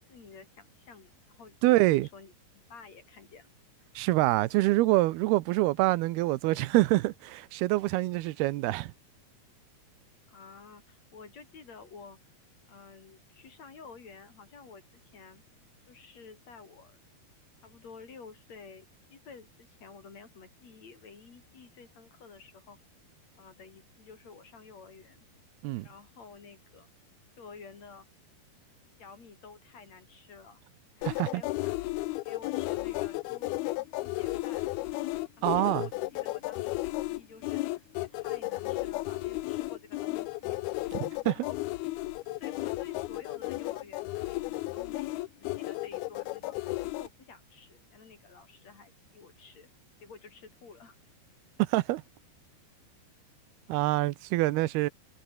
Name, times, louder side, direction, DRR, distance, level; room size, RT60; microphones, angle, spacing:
voice 1, 0.0-3.5 5.8-5.9 10.3-12.2 12.6-15.4 15.9-17.0 17.6-22.8 23.4-25.3 25.8-26.9 27.4-28.1 29.0-30.6 31.0-31.7 32.2-34.7 35.4-40.6 41.3-41.6 42.3-49.7 50.0-51.0, left 5 dB, 45° left, 4.5 m, -51 dB
voice 2, 1.6-2.1 4.0-8.9 25.6-25.9 31.1-31.4 35.4-35.9 40.9-41.4 51.6-52.0 53.7-54.9, right 18 dB, 85° right, 2.7 m, -26 dB
sound 1, 31.0-47.1, left 19 dB, 90° left, 2.6 m, -34 dB
omnidirectional pair, 4.5 m